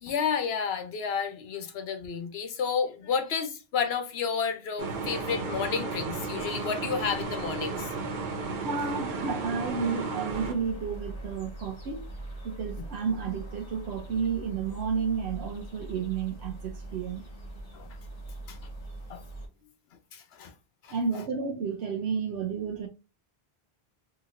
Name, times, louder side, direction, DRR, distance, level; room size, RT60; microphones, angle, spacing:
voice 1, 0.0-7.9 17.7-17.9 18.5-18.6 19.1-19.2 20.1-20.5 20.8-21.0, left 6 dB, 80° left, 1.0 m, -31 dB
sound 1, 4.8-10.5, right 3 dB, 55° right, 0.7 m, -34 dB
voice 2, 8.6-12.1 12.4-17.2 20.9-22.9, right 6 dB, 90° right, 0.8 m, -31 dB
sound 2, 10.3-19.5, right 2 dB, 60° left, 1.5 m, -42 dB
3.9 x 2.8 x 2.4 m
omnidirectional pair, 1.0 m